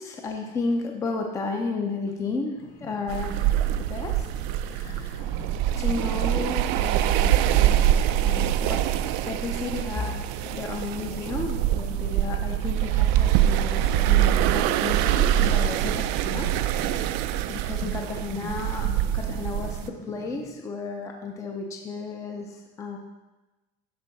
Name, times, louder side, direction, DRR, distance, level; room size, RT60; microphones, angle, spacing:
voice 1, 0.0-4.3 4.6-5.3 5.8-8.8 9.2-17.1 17.5-18.9 19.1-19.8 20.1-23.0, left 3 dB, 15° left, 2 dB, 0.5 m, -33 dB
sound 1, 2.6-20.5, left 2 dB, 45° left, 2.4 m, -44 dB
sound 2, 3.1-19.9, right 12 dB, 55° right, 0.4 m, -24 dB
12.0 x 4.5 x 4.0 m, 1.1 s
cardioid pair, 170°, 20 cm